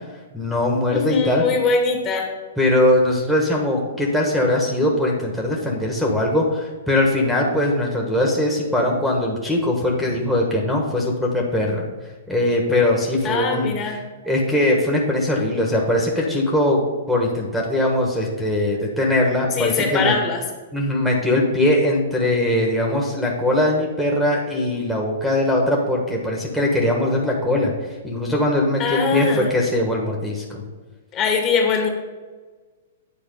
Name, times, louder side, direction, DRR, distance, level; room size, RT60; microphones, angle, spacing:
voice 1, 0.3-1.4 2.6-11.8 12.3-13.7 14.2-16.8 17.1-20.1 20.7-27.7 28.0-30.6, left 1 dB, ahead, -3 dB, 1.3 m, -21 dB
voice 2, 0.9-2.3 10.0-10.2 13.2-14.0 19.5-20.4 28.8-29.5 31.1-31.9, left 5 dB, 30° left, 2 dB, 1.6 m, -22 dB
9.2 x 4.2 x 5.5 m, 1.3 s
hypercardioid pair, 125°, 0 cm